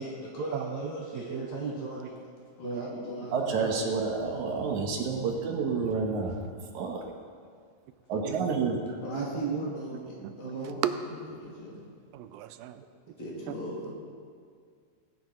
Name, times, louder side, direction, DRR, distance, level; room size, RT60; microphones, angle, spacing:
voice 1, 0.0-2.2 2.6-3.9 9.0-11.8 13.2-13.9, left 1 dB, 80° left, -5 dB, 4.6 m, -38 dB
voice 2, 1.1-1.9 2.6-2.8 8.3-8.5 9.1-9.6 10.2-10.9 12.1-12.8, right 12 dB, 85° right, 11 dB, 2.3 m, -35 dB
voice 3, 3.3-6.4 6.7-7.0 8.1-9.0, right 4 dB, 65° right, 1 dB, 2.3 m, -29 dB
18.0 x 10.0 x 4.4 m, 2.1 s
omnidirectional pair, 4.0 m